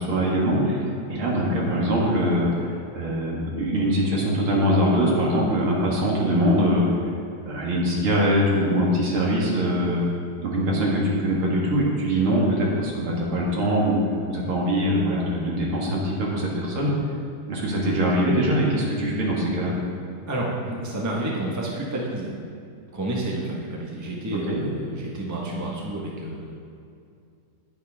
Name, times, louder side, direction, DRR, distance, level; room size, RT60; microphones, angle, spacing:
voice 1, 0.0-7.1 7.5-10.0 10.4-14.0 14.3-16.9 17.5-19.7 24.3-24.6, equal, 75° right, -3 dB, 2.6 m, -23 dB
voice 2, 20.3-22.3 22.9-26.5, right 1 dB, 10° right, -3 dB, 1.1 m, -30 dB
9.8 x 9.7 x 3.7 m, 2.5 s
omnidirectional pair, 2.4 m